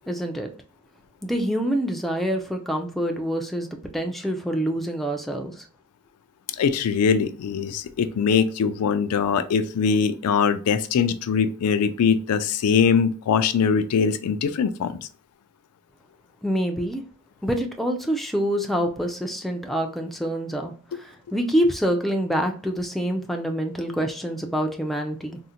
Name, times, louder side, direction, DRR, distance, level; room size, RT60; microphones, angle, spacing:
voice 1, 0.1-0.5 1.2-3.7 3.9-5.7 16.4-17.0 17.4-25.4, equal, ahead, 0.4 m, -26 dB
voice 2, 6.6-15.0, left 6 dB, 80° left, 0.3 m, -22 dB
3.7 x 2.1 x 2.8 m
head